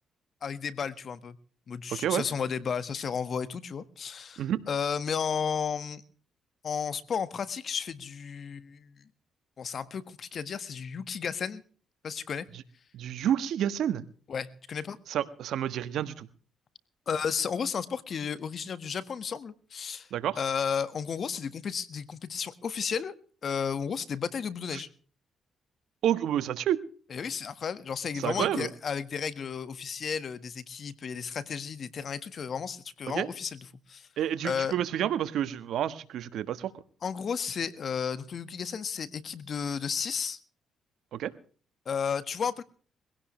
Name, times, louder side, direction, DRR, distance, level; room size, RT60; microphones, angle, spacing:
voice 1, 0.4-1.4 1.7-6.0 6.6-9.0 9.6-11.6 12.0-12.5 14.3-15.0 17.1-20.1 20.4-23.2 23.4-24.9 27.1-33.6 33.9-34.1 34.4-34.7 37.0-40.4 41.8-42.6, left 6 dB, 55° left, 14 dB, 1.5 m, -33 dB
voice 2, 12.9-14.0 15.1-16.3 20.1-20.4 24.7-24.8 26.0-26.8 28.1-28.7 33.1-33.3 34.2-36.7 41.1-41.3, right 10 dB, 75° right, 13 dB, 1.3 m, -29 dB
21.5 x 16.5 x 3.2 m, 0.42 s
supercardioid pair, 65°, 0 cm